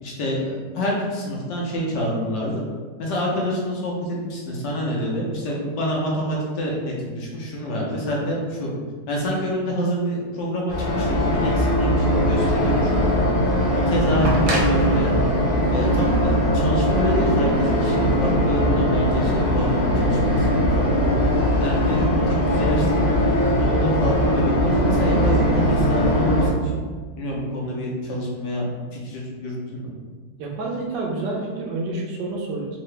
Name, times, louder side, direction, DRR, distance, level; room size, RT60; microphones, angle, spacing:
voice 1, 0.0-2.6 3.0-8.7 9.1-13.2 13.9-15.2 15.7-21.1 21.6-23.1 23.5-26.7 27.2-28.7 28.9-29.9, equal, 70° left, -3 dB, 1.4 m, -27 dB
sound 1, 10.7-26.5, equal, 50° left, 0.6 m, -20 dB
sound 2, 14.2-17.1 18.3-18.4, right 1 dB, 55° right, 0.8 m, -29 dB
voice 2, 30.4-32.8, right 2 dB, 75° right, -1 dB, 1.3 m, -28 dB
3.7 x 2.8 x 3.2 m, 1.5 s
omnidirectional pair, 2.0 m